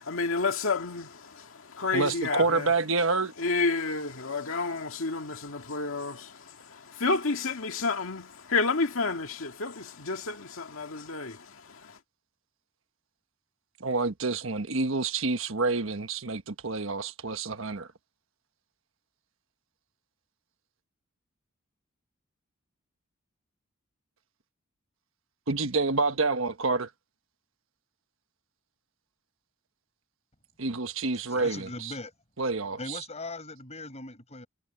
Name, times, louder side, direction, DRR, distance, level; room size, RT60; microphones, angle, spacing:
voice 1, 0.0-1.5 1.7-2.7 3.4-6.3 6.7-11.4, left 3 dB, 75° left, 2.0 m, -30 dB
voice 2, 1.9-3.3 13.8-17.9 25.5-26.9 30.6-31.9 32.4-33.0, right 3 dB, 70° right, 1.3 m, -28 dB
voice 3, 31.3-32.1 32.8-34.5, left 2 dB, 35° left, 5.1 m, -40 dB
head